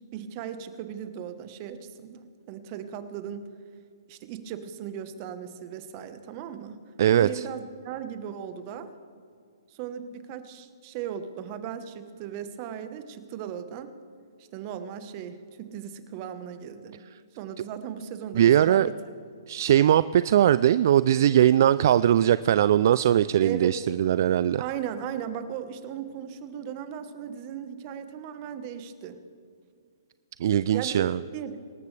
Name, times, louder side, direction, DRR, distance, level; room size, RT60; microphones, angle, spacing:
voice 1, 0.1-3.5 4.1-6.8 7.1-8.9 9.7-13.9 14.5-17.0 17.4-18.9 23.4-23.7 24.6-29.2 30.7-31.0 31.3-31.6, right 9 dB, 35° right, 10 dB, 1.2 m, -37 dB
voice 2, 7.0-7.4 18.3-18.9 19.5-24.6 30.4-31.2, right 11 dB, 55° right, 16 dB, 0.3 m, -20 dB
25.0 x 13.0 x 3.3 m, 2.2 s
hypercardioid pair, 140°, 2 cm